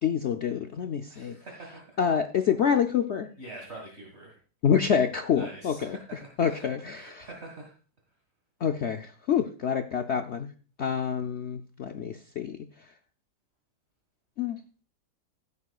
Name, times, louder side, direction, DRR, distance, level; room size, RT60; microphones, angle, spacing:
voice 1, 0.0-1.4 2.0-3.3 4.6-7.3 8.6-10.5 10.8-12.7 14.4-14.6, left 7 dB, 75° left, 6 dB, 0.6 m, -27 dB
voice 2, 1.1-1.8 3.4-4.4 5.3-6.7 7.0-7.7, right 2 dB, 35° right, -1 dB, 2.0 m, -45 dB
15.5 x 8.3 x 2.4 m, 0.37 s
omnidirectional pair, 1.9 m